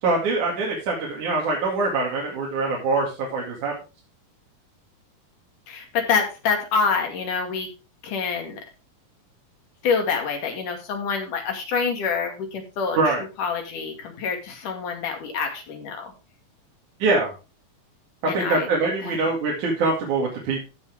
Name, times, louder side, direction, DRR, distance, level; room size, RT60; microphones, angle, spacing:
voice 1, 0.0-3.7 13.0-13.2 17.0-17.3 18.3-20.6, right 3 dB, 75° right, -2 dB, 3.6 m, -23 dB
voice 2, 5.7-7.7 8.0-8.6 9.8-13.0 13.4-16.1 18.3-18.7 19.0-19.2, left 5 dB, 90° left, 3 dB, 3.9 m, -26 dB
16.0 x 6.3 x 3.5 m, 0.31 s
omnidirectional pair, 3.5 m